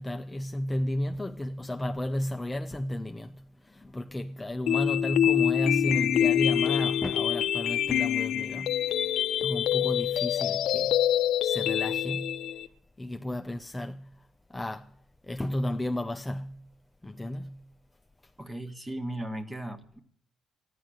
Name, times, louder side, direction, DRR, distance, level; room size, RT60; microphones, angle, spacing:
voice 1, 0.0-11.1 11.4-12.5 13.0-15.0 15.2-16.7 17.0-17.7, left 1 dB, 10° left, 0.6 m, -33 dB
sound 1, 4.7-12.7, left 11 dB, 75° left, 0.5 m, -26 dB
voice 2, 18.4-20.0, right 1 dB, 15° right, 1.5 m, -36 dB
13.5 x 10.0 x 7.7 m
cardioid pair, 90°, 0 cm